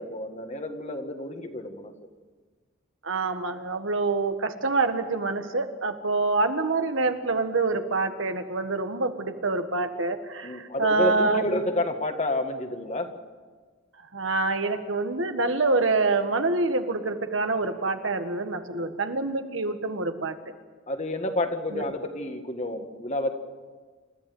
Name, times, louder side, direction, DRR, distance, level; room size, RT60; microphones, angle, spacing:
voice 1, 0.0-2.1 10.4-13.1 18.7-18.9 20.9-23.3, left 1 dB, 35° left, 6 dB, 1.8 m, -30 dB
voice 2, 3.0-11.6 14.1-20.4 21.7-21.9, right 3 dB, 80° right, 7 dB, 1.7 m, -26 dB
29.0 x 14.0 x 7.9 m, 1.4 s
head